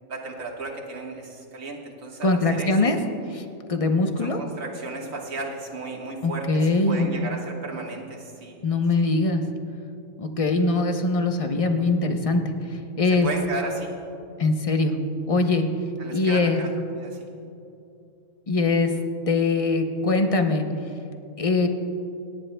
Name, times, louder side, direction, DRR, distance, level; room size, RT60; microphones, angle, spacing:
voice 1, 0.1-3.0 4.2-8.6 9.0-9.1 13.1-14.0 16.0-16.7 16.9-17.3, right 2 dB, 65° right, 0 dB, 1.9 m, -34 dB
voice 2, 2.2-3.0 3.3-4.4 6.2-7.3 8.6-9.4 10.2-12.4 12.7-13.3 14.4-15.0 15.3-15.7 16.1-16.6 18.5-18.9 19.3-20.7 21.4-21.7, left 3 dB, 35° left, 5 dB, 0.6 m, -22 dB
27.5 x 10.5 x 2.2 m, 2.7 s
omnidirectional pair, 1.5 m